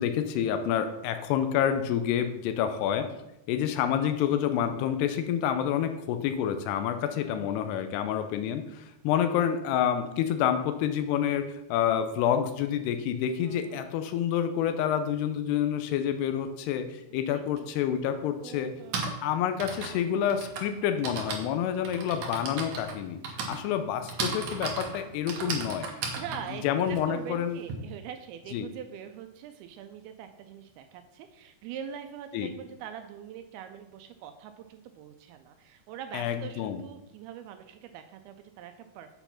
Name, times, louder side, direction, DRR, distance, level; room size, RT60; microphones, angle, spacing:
voice 1, 0.0-3.1 3.5-18.7 19.1-25.9 26.6-27.6 28.5-28.7 32.3-32.5 36.1-36.8, left 9 dB, 90° left, 8 dB, 2.7 m, -28 dB
voice 2, 7.2-7.6 9.1-9.4 13.4-13.9 17.3-17.6 18.4-19.0 26.2-39.1, right 9 dB, 80° right, 7 dB, 2.4 m, -43 dB
Typing, 17.6-17.7 18.6-27.7, right 4 dB, 65° right, 1.9 m, -36 dB
7.9 x 4.3 x 5.8 m, 0.88 s
omnidirectional pair, 4.6 m